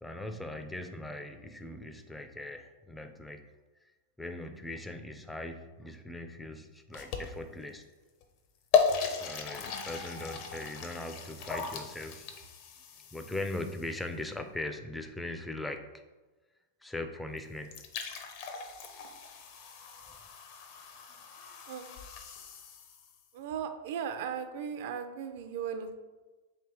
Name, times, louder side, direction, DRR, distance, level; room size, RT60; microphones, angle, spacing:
voice 1, 0.0-3.4 4.2-7.8 9.2-12.3 13.1-15.8 16.8-17.7 20.1-20.2, left 2 dB, 5° left, 6 dB, 0.4 m, -40 dB
sound 1, 6.9-7.6 8.2-8.3 8.7-14.0 17.4-17.5 17.6-23.2, left 6 dB, 50° left, 0.6 m, -35 dB
voice 2, 23.3-26.0, right 7 dB, 60° right, 8 dB, 0.5 m, -37 dB
3.3 x 2.9 x 4.6 m, 1.2 s
hypercardioid pair, 135°, 0 cm